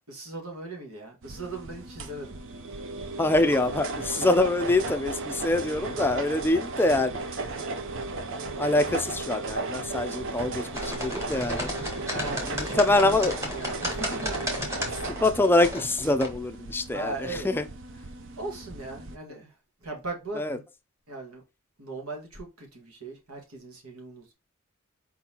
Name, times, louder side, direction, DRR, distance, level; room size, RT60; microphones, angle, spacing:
voice 1, 0.1-2.3 12.0-13.2 13.5-14.4 16.9-17.5 18.4-19.5 19.8-20.6 21.1-21.4 21.8-24.3, right 2 dB, 85° right, 1.8 m, -38 dB
sound 1, 1.2-19.2, right 3 dB, 60° right, 0.6 m, -35 dB
voice 2, 3.2-7.5 8.6-11.7 12.2-13.3 15.2-17.7 20.4-20.6, left 2 dB, 10° left, 0.4 m, -25 dB
sound 2, 10.7-16.3, equal, 15° right, 1.2 m, -34 dB
4.5 x 4.1 x 2.8 m
head